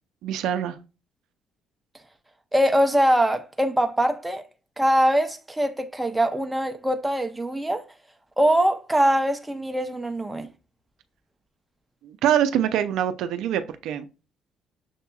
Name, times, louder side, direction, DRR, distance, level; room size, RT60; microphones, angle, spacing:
voice 1, 0.2-0.8 12.0-14.1, right 10 dB, 75° right, 0.4 m, -24 dB
voice 2, 2.5-4.4 4.8-7.8 8.4-10.5, equal, 10° right, 0.6 m, -22 dB
6.7 x 2.8 x 2.3 m
supercardioid pair, 85°, 0 cm